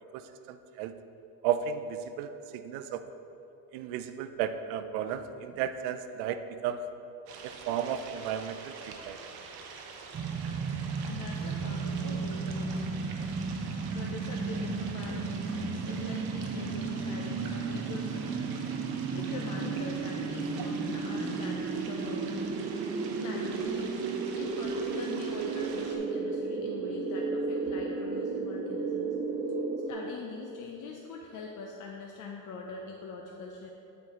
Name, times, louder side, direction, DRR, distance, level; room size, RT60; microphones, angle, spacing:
voice 1, 0.1-0.9 1.4-3.0 3.7-6.8 7.4-9.2 20.6-20.7, right 9 dB, 85° right, 10 dB, 0.6 m, -34 dB
sound 1, 7.3-26.0, right 4 dB, 55° right, 0.9 m, -46 dB
sound 2, 10.1-29.9, right 4 dB, 25° right, 0.3 m, -33 dB
voice 2, 11.1-13.1 13.9-18.4 19.1-22.5 23.2-24.0 24.4-29.1 29.9-33.7, left 4 dB, 45° left, 1 dB, 0.6 m, -43 dB
9.2 x 4.6 x 3.7 m, 2.9 s
cardioid pair, 110°, 45 cm